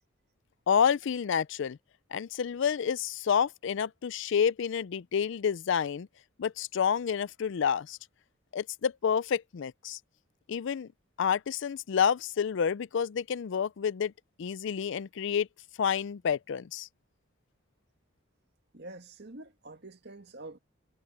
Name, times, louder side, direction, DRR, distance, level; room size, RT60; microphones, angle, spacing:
voice 1, 0.7-1.8 2.1-6.1 6.4-8.0 8.5-10.0 10.5-10.9 11.2-14.1 14.4-15.5 15.8-16.9, left 7 dB, 65° left, 0.4 m, -29 dB
voice 2, 18.7-20.6, right 2 dB, 55° right, 1.9 m, -46 dB
head